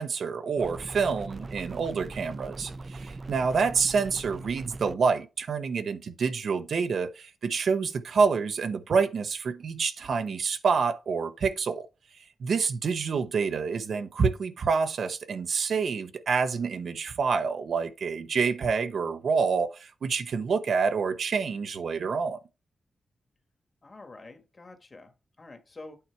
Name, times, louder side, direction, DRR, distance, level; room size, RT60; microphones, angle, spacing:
voice 1, 0.0-11.9 12.4-22.4, right 5 dB, 70° right, 0.8 m, -27 dB
sound 1, 0.6-5.0, right 3 dB, 35° right, 0.5 m, -40 dB
voice 2, 23.8-26.0, left 3 dB, 35° left, 1.5 m, -47 dB
8.8 x 4.5 x 4.5 m
wide cardioid pair, 115°, 0 cm